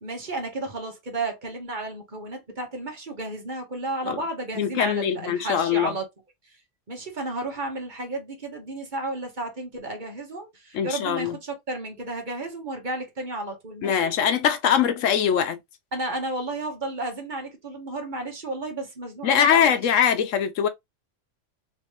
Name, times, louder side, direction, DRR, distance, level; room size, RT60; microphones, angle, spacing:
voice 1, 0.0-6.0 6.9-14.1 15.9-19.9, right 2 dB, 40° right, 1.2 m, -32 dB
voice 2, 4.6-5.9 10.7-11.3 13.8-15.6 19.2-20.7, left 8 dB, 85° left, 1.1 m, -22 dB
3.2 x 3.1 x 2.9 m
omnidirectional pair, 1.3 m